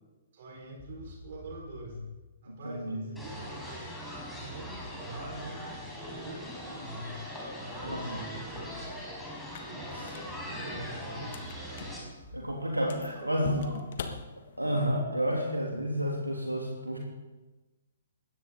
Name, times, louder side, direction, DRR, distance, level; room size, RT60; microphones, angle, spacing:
voice 1, 0.3-2.0 2.4-4.1 4.4-7.3 7.6-8.9 9.9-11.4 12.3-13.8 15.4-15.6, right 1 dB, 45° right, -1 dB, 4.6 m, -45 dB
sound 1, 0.8-2.1 3.2-6.9 7.8-9.1 9.8-13.7, right 1 dB, 20° right, 6.4 m, -49 dB
voice 2, 2.5-3.0 7.9-8.2 9.7-10.0 12.3-13.7 14.6-17.0, equal, 85° right, -1 dB, 2.7 m, -31 dB
sound 2, 3.2-12.0, equal, 5° left, 4.6 m, -41 dB
sound 3, 9.4-14.9, left 5 dB, 50° left, 1.6 m, -44 dB
21.0 x 17.0 x 3.9 m, 1.1 s
figure-of-eight pair, 120°, 0 cm